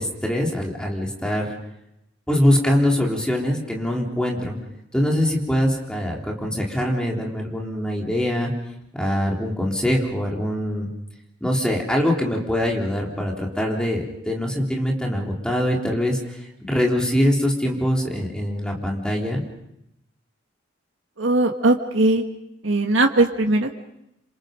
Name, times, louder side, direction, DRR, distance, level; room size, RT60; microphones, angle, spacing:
voice 1, 0.0-1.5 2.3-4.6 4.9-8.5 8.9-10.9 11.4-16.2 16.6-19.4, equal, 5° left, -1 dB, 3.7 m, -23 dB
voice 2, 21.2-22.2 22.6-23.7, right 2 dB, 85° right, 3 dB, 1.8 m, -19 dB
28.0 x 26.5 x 5.3 m, 0.83 s
head